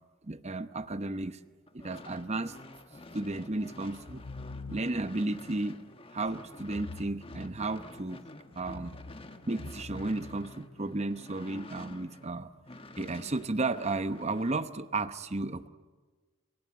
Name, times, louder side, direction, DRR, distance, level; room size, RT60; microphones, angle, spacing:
voice 1, 0.2-1.4 1.7-2.6 3.1-4.2 4.7-5.8 6.1-8.2 8.5-8.9 9.5-12.5 13.0-15.7, right 2 dB, 30° right, 12 dB, 0.9 m, -33 dB
sound 1, 1.7-12.3 12.6-14.6, left 2 dB, 25° left, 1.3 m, -49 dB
sound 2, 3.9-5.2 6.6-8.0 8.5-11.0, left 3 dB, 60° left, 0.8 m, -46 dB
25.5 x 23.5 x 9.8 m, 1.4 s
head